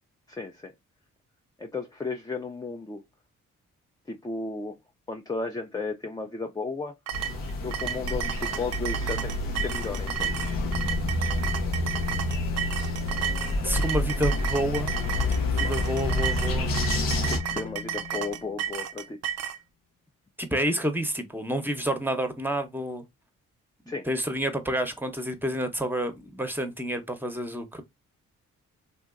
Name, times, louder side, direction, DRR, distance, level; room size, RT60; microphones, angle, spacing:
voice 1, 0.3-0.7 1.6-3.0 4.1-4.8 5.1-6.9 7.6-10.3 17.3-19.2 23.9-24.1, left 3 dB, 10° left, 0.4 m, -34 dB
sound 1, 7.1-17.4, left 2 dB, 80° left, 0.7 m, -30 dB
sound 2, 7.1-19.6, right 9 dB, 50° right, 0.4 m, -33 dB
sound 3, 10.0-18.6, left 1 dB, 45° left, 1.0 m, -32 dB
voice 2, 13.6-14.9 15.5-16.7 20.4-23.0 24.1-27.8, right 1 dB, 5° right, 0.8 m, -29 dB
2.8 x 2.5 x 2.4 m
supercardioid pair, 50°, 34 cm